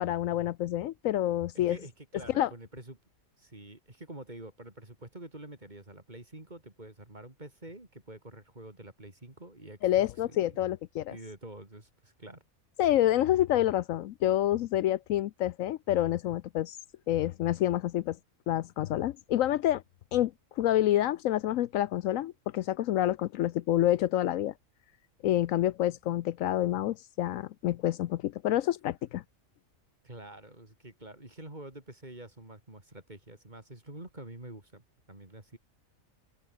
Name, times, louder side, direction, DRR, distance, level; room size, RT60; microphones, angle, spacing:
voice 1, 0.0-1.8 2.4-2.5 9.8-11.2 12.8-16.8 17.1-18.2 18.5-19.8 20.1-24.5 25.2-29.2, left 13 dB, 75° left, 1.0 m, -28 dB
voice 2, 1.5-3.0 3.4-10.7 11.1-12.5 30.0-35.6, right 1 dB, 30° right, 4.1 m, -47 dB
omnidirectional pair, 1.4 m